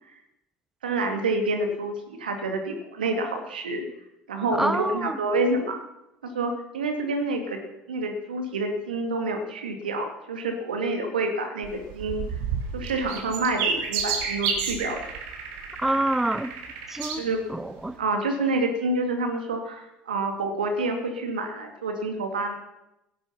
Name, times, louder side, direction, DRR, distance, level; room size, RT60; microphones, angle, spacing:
voice 1, 0.8-3.8 4.3-5.8 6.2-7.6 7.9-12.2 12.7-15.0 17.2-17.4 18.0-22.5, right 2 dB, 80° right, 2.2 m, -28 dB
voice 2, 4.5-5.2 15.8-16.5 16.9-18.0, right 1 dB, 5° right, 0.7 m, -27 dB
sound 1, 11.6-17.2 17.8-17.9, right 6 dB, 65° right, 2.7 m, -30 dB
16.5 x 8.5 x 5.8 m
figure-of-eight pair, 65°, 5 cm